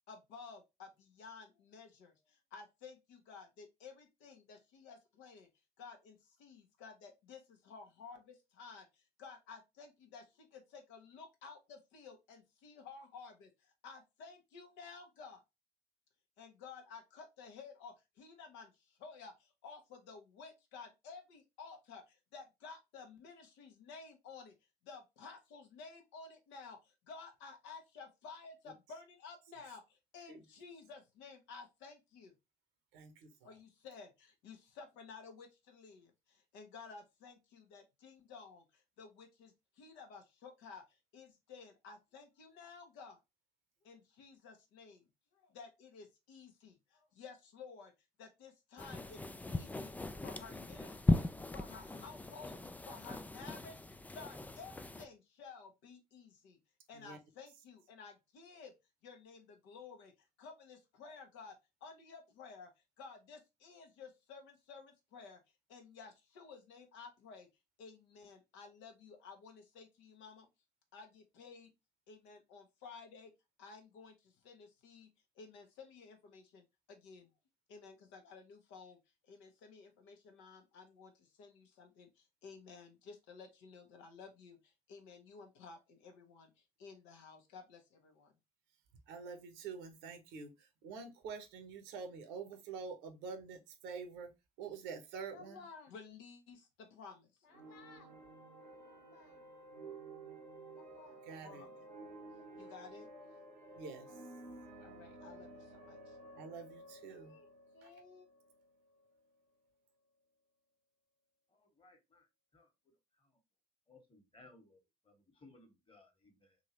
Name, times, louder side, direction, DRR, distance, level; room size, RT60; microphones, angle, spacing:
voice 1, 0.1-5.5 5.8-15.4 16.4-24.5 24.8-32.3 33.4-43.2 43.8-47.9 48.2-49.2 49.5-51.3 51.5-53.8 54.1-56.6 56.9-58.7 59.0-62.7 63.0-65.4 65.7-67.5 67.8-70.5 70.9-71.7 72.1-73.3 73.6-75.1 75.3-77.3 77.7-79.0 79.2-88.3 95.3-98.1 98.8-99.4 100.7-101.8 102.5-103.8 104.8-106.2 107.1-107.5 107.7-108.3, left 5 dB, 60° left, 1.0 m, -54 dB
voice 2, 32.9-33.6 56.9-57.2 89.1-94.3 94.6-95.6 101.2-101.6 103.8-104.2 106.4-107.3 107.8-107.9, right 5 dB, 60° right, 1.0 m, -47 dB
sound 1, 48.8-55.1, left 2 dB, 5° left, 0.4 m, -38 dB
sound 2, 97.5-109.2, right 2 dB, 85° right, 1.2 m, -53 dB
voice 3, 111.5-112.3 112.5-112.7 113.2-113.4 113.9-116.6, left 2 dB, 25° left, 1.6 m, -63 dB
3.8 x 2.7 x 2.9 m
figure-of-eight pair, 55°, 21 cm